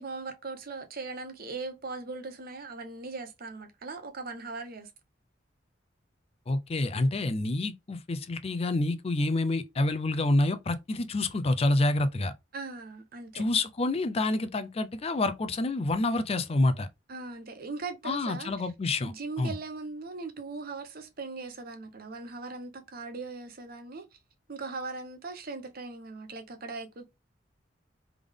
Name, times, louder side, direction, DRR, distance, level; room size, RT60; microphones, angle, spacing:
voice 1, 0.0-4.9 12.5-13.4 17.1-18.5 19.0-24.0 24.5-27.0, right 3 dB, 55° right, 0.9 m, -39 dB
voice 2, 6.5-12.3 13.3-16.9 18.0-19.1 19.4-19.5, left 2 dB, 35° left, 0.4 m, -27 dB
3.6 x 3.4 x 3.5 m
head